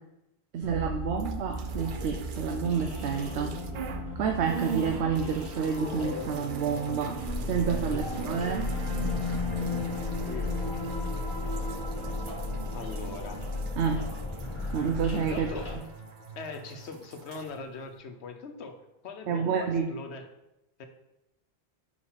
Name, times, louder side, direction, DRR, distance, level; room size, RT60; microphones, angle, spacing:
voice 1, 0.5-3.6 4.2-7.2 7.5-8.7 13.8-14.0 14.7-15.5 19.3-19.8, right 6 dB, 85° right, 3 dB, 0.9 m, -29 dB
sound 1, 0.6-15.8, left 2 dB, 25° left, 1.3 m, -35 dB
sound 2, 1.1-4.1 4.4-16.3 16.5-17.5, right 6 dB, 60° right, 0.6 m, -42 dB
sound 3, 2.3-17.6, left 3 dB, 45° right, 1.0 m, -40 dB
voice 2, 12.7-13.4 15.1-15.7 16.4-18.8 19.0-20.2 20.8-20.9, left 4 dB, 85° left, 6 dB, 1.0 m, -41 dB
4.7 x 4.4 x 5.6 m, 0.89 s
omnidirectional pair, 1.1 m